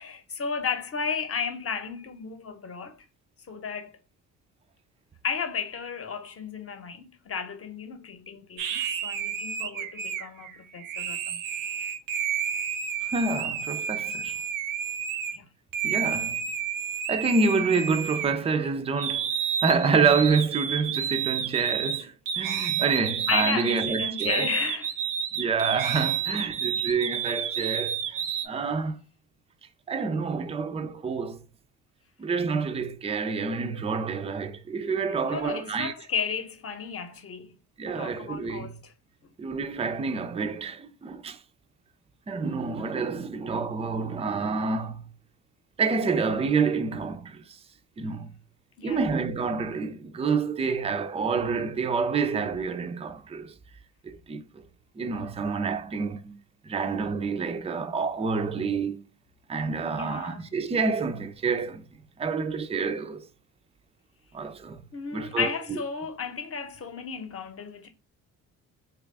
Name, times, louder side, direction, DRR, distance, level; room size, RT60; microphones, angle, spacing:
voice 1, 0.0-3.0 3.5-4.0 5.2-11.4 13.2-13.4 15.3-15.4 23.3-24.9 35.1-37.6 37.8-38.9 48.8-49.1 59.8-60.5 64.9-67.9, left 6 dB, 35° left, 0.9 m, -33 dB
sound 1, 8.6-15.4 15.7-18.6 19.0-28.5, right 8 dB, 60° right, 0.6 m, -30 dB
voice 2, 13.1-14.4 15.8-16.4 17.1-19.3 19.6-24.5 25.4-28.2 28.5-29.0 29.9-31.4 32.2-35.9 37.8-38.7 39.4-41.4 42.3-45.0 45.8-47.4 48.0-48.3 48.8-53.5 54.0-54.4 55.0-56.3 56.7-59.0 59.5-61.8 62.2-63.3 64.3-64.8 65.1-65.5, right 4 dB, 15° right, 0.4 m, -28 dB
3.1 x 2.3 x 3.3 m
supercardioid pair, 65°, 37 cm